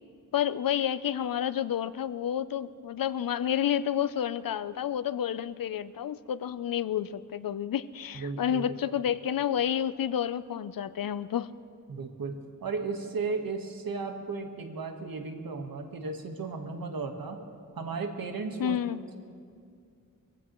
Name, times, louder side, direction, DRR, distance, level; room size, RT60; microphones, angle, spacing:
voice 1, 0.3-11.5 18.6-19.0, left 9 dB, 75° left, 15 dB, 0.5 m, -30 dB
voice 2, 8.1-8.8 11.9-12.3 12.6-17.4 17.7-18.8, right 4 dB, 90° right, 4 dB, 1.4 m, -35 dB
23.5 x 15.5 x 3.0 m, 2.3 s
wide cardioid pair, 95°, 34 cm